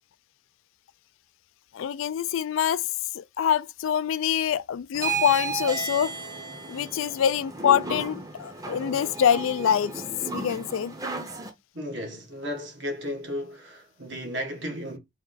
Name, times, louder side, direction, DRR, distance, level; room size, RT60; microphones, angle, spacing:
voice 1, 1.7-2.9 3.1-6.1 6.7-9.9 10.3-10.9, left 8 dB, 85° left, 0.3 m, -25 dB
sound 1, 4.9-11.5, right 4 dB, 20° right, 0.7 m, -34 dB
voice 2, 11.7-15.0, equal, 65° right, 1.5 m, -34 dB
3.6 x 3.1 x 3.9 m
head